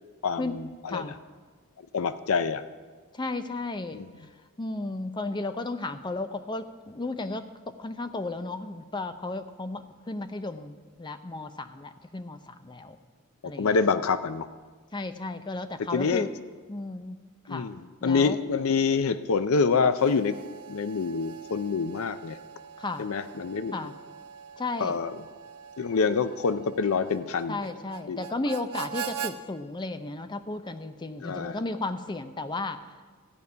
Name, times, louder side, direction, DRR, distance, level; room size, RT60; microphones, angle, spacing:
voice 1, 0.2-1.1 1.9-2.6 3.9-4.1 13.6-14.5 15.9-16.3 17.5-20.3 20.7-22.4 23.0-23.9 24.8-25.1 25.8-27.6 28.1-28.2 31.2-31.6, left 5 dB, 65° left, 12 dB, 0.5 m, -26 dB
voice 2, 3.1-4.0 4.6-13.0 13.4-13.8 14.9-16.3 16.7-17.2 17.5-18.4 22.8-23.1 23.7-23.9 24.6-25.0 27.5-32.8, left 2 dB, 20° left, 10 dB, 0.6 m, -34 dB
Harmonica, 19.8-29.4, right 8 dB, 80° right, 0.7 m, -42 dB
14.0 x 5.3 x 9.5 m, 1.4 s
head